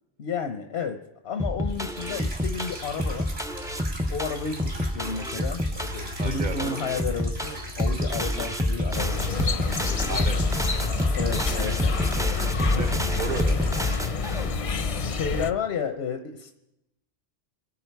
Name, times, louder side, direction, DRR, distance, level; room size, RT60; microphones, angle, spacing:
voice 1, 0.2-3.4 4.1-9.4 11.1-12.2 14.6-16.5, left 6 dB, 85° left, 6 dB, 1.1 m, -32 dB
sound 1, 1.4-14.6, equal, 5° right, 0.4 m, -28 dB
sound 2, 1.7-14.1, equal, 85° right, 3.3 m, -38 dB
voice 2, 6.2-6.8 10.1-10.4 12.7-13.8, right 5 dB, 50° right, 7 dB, 1.1 m, -33 dB
sound 3, 8.9-15.5, left 5 dB, 40° left, 0.6 m, -28 dB
24.0 x 9.9 x 4.6 m, 0.91 s
omnidirectional pair, 1.0 m